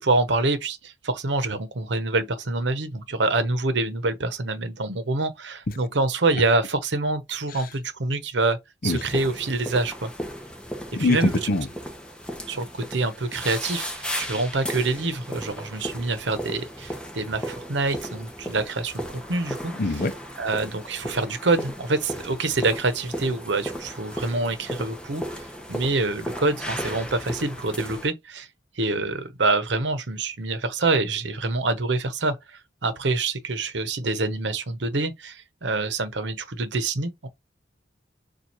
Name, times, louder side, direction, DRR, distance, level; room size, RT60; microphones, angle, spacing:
voice 1, 0.0-8.6 8.8-10.1 11.0-11.3 12.5-19.7 20.4-28.5 28.8-37.3, right 3 dB, 80° right, 0.9 m, -26 dB
sound 1, 8.8-28.1, equal, 5° left, 0.9 m, -35 dB
voice 2, 10.9-11.7 19.8-20.1, left 2 dB, 50° left, 0.6 m, -24 dB
7.0 x 2.5 x 3.0 m
head